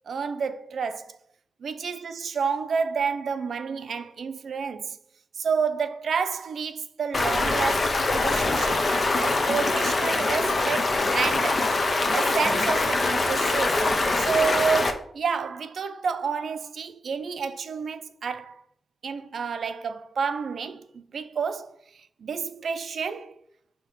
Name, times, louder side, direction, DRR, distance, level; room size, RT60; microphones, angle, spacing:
voice 1, 0.1-1.2 1.6-5.0 5.4-8.8 9.2-11.7 12.1-18.6 19.0-21.7 22.2-23.4, right 6 dB, 70° right, 0.5 m, -30 dB
Stream, 7.1-14.9, left 2 dB, 35° left, 0.6 m, -24 dB
7.4 x 2.9 x 5.7 m
wide cardioid pair, 180°, 0 cm